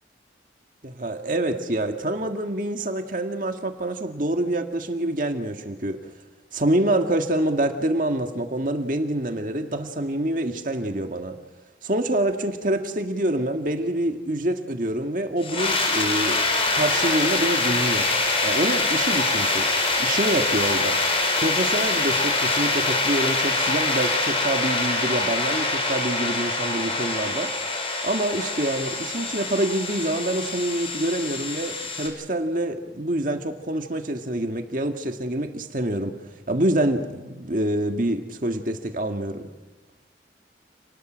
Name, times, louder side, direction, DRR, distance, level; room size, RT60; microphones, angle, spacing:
voice 1, 0.8-6.0 6.5-11.4 11.8-16.4 16.7-18.1 18.4-19.7 20.0-21.0 21.4-27.5 28.0-36.2 36.5-39.5, right 1 dB, 50° right, 1.8 m, -26 dB
sound 1, 15.4-32.1, left 3 dB, 30° left, 4.9 m, -24 dB
29.0 x 20.0 x 6.3 m
head